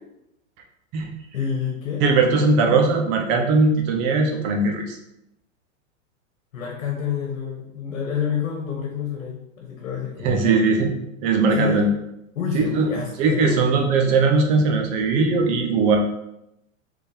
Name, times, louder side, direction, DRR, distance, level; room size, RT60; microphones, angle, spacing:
voice 1, 1.3-2.1 6.5-10.7 11.5-11.8 12.3-13.7, left 7 dB, 90° left, 0 dB, 1.3 m, -28 dB
voice 2, 2.0-5.0 10.2-10.9 11.2-11.9 12.5-12.9 13.2-16.0, right 4 dB, 20° right, 2 dB, 0.3 m, -19 dB
4.2 x 3.5 x 3.4 m, 0.83 s
supercardioid pair, 145°, 39 cm